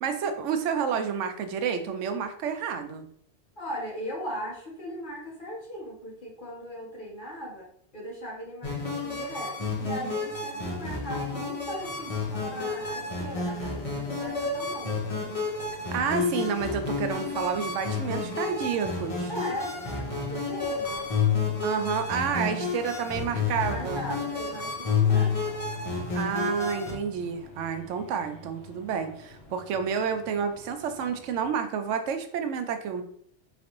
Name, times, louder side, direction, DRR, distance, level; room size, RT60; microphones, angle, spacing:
voice 1, 0.0-3.1 15.9-19.3 21.6-24.0 26.1-33.0, right 6 dB, 90° right, 8 dB, 0.9 m, -30 dB
voice 2, 3.6-7.7 7.9-15.0 19.3-21.1 22.3-22.7 23.6-25.6, equal, 45° left, -3 dB, 1.3 m, -38 dB
sound 1, 8.6-26.9, left 4 dB, 30° left, 0.9 m, -30 dB
sound 2, 11.8-31.5, left 1 dB, 65° left, 1.2 m, -50 dB
4.0 x 3.2 x 2.9 m, 0.65 s
omnidirectional pair, 1.2 m